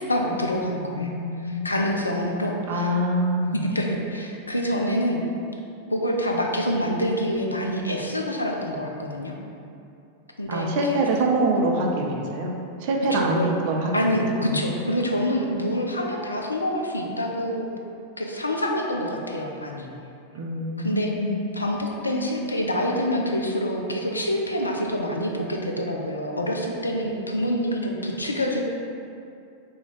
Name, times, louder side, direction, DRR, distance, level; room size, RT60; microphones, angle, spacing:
voice 1, 0.0-1.1 1.4-2.9 3.4-5.2 5.9-9.3 10.4-11.0 13.1-13.5 13.9-17.7 18.2-19.9 20.8-21.1 21.5-28.6, equal, 80° left, 0 dB, 0.4 m, -26 dB
voice 2, 0.9-1.7 2.7-3.6 10.5-12.5 12.8-13.9 14.5-14.7 20.3-21.4, right 1 dB, 50° right, 0 dB, 0.4 m, -25 dB
2.8 x 2.7 x 4.3 m, 2.6 s
figure-of-eight pair, 90°, 0 cm